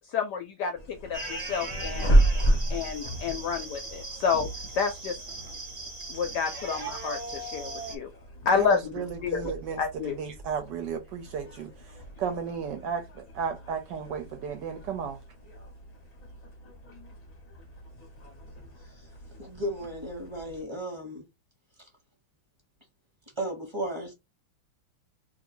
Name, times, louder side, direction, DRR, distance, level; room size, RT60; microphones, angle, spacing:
voice 1, 0.0-2.2 2.7-4.5 4.8-5.2 6.1-8.1 8.4-10.2, left 6 dB, 75° left, 1.0 m, -29 dB
sound 1, 0.8-20.6, right 1 dB, 30° left, 0.7 m, -33 dB
sound 2, 1.1-8.0, right 2 dB, 45° right, 0.5 m, -39 dB
voice 2, 8.5-15.2, right 7 dB, 70° right, 1.1 m, -34 dB
voice 3, 19.4-21.3 23.4-24.1, right 1 dB, 20° right, 0.9 m, -34 dB
2.9 x 2.6 x 4.2 m
omnidirectional pair, 2.3 m